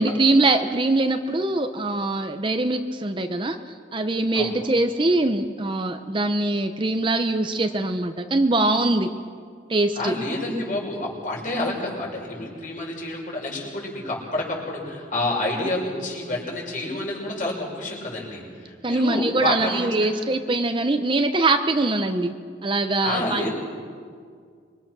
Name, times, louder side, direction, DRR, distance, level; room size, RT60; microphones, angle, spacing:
voice 1, 0.0-3.6 3.9-9.1 9.7-10.1 18.8-22.3 22.6-23.5, right 2 dB, 25° right, 7 dB, 0.8 m, -22 dB
voice 2, 10.0-20.1 23.0-23.5, left 2 dB, 45° left, -2 dB, 6.0 m, -29 dB
26.0 x 23.5 x 6.2 m, 2.1 s
head